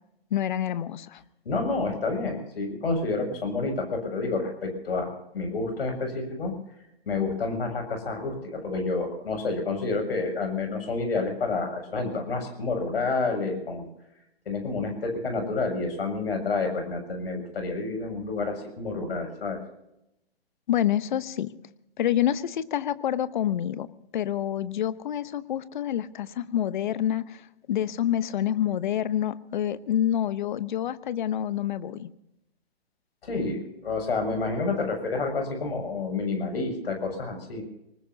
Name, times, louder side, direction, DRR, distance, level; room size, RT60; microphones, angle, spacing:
voice 1, 0.3-1.2 20.7-21.5 22.0-23.9 24.1-27.4 27.7-32.1, left 11 dB, 50° left, 15 dB, 1.0 m, -27 dB
voice 2, 1.5-6.5 7.1-13.9 14.5-19.6 33.2-37.6, left 3 dB, 70° left, 4 dB, 7.0 m, -29 dB
25.0 x 19.5 x 2.8 m, 0.85 s
hypercardioid pair, 135°, 31 cm